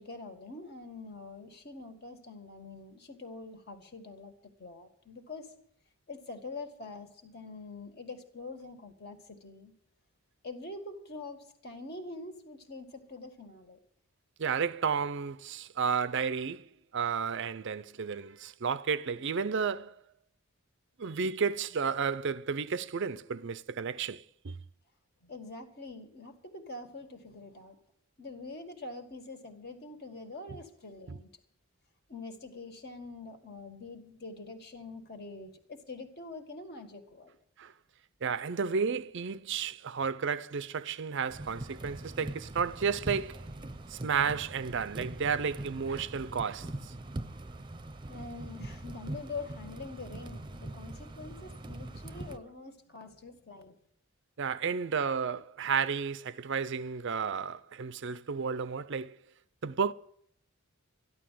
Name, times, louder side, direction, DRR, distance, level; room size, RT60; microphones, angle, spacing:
voice 1, 0.0-4.3 4.6-5.5 6.1-9.7 10.4-13.8 25.2-27.8 28.2-31.3 32.1-37.4 48.0-53.7, left 3 dB, 45° left, 2.0 m, -45 dB
voice 2, 14.4-20.0 21.0-24.6 30.5-30.6 31.1-31.2 37.6-37.7 38.2-43.5 43.9-46.9 54.4-59.2 59.6-59.9, right 6 dB, 55° right, 0.5 m, -32 dB
sound 1, 41.3-52.4, right 1 dB, 20° right, 0.8 m, -42 dB
13.5 x 11.5 x 7.6 m
head